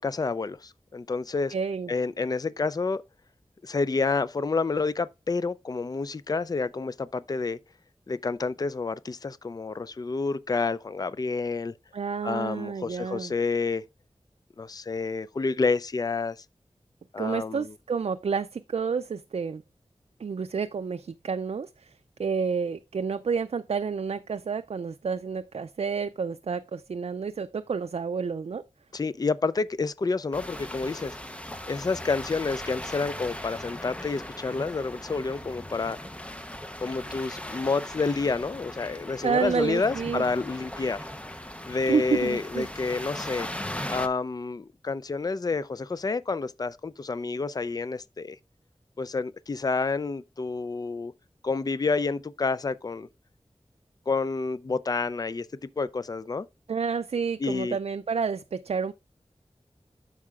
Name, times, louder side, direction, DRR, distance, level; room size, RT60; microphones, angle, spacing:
voice 1, 0.0-1.5 1.9-3.0 3.6-7.6 8.1-11.7 12.2-13.8 14.6-16.4 17.1-17.7 28.9-31.2 31.6-36.0 36.8-41.1 41.6-43.5 43.9-48.4 49.0-51.1 51.4-53.1 54.1-56.5 57.4-57.8, left 4 dB, 35° left, 0.4 m, -29 dB
voice 2, 1.5-1.9 11.9-13.3 17.2-19.6 20.2-21.9 22.2-28.6 39.2-40.2 41.9-42.7 56.7-58.9, right 5 dB, 70° right, 0.4 m, -29 dB
sound 1, 30.3-44.1, left 1 dB, 10° left, 0.7 m, -38 dB
12.5 x 4.8 x 2.3 m
wide cardioid pair, 60°, 11 cm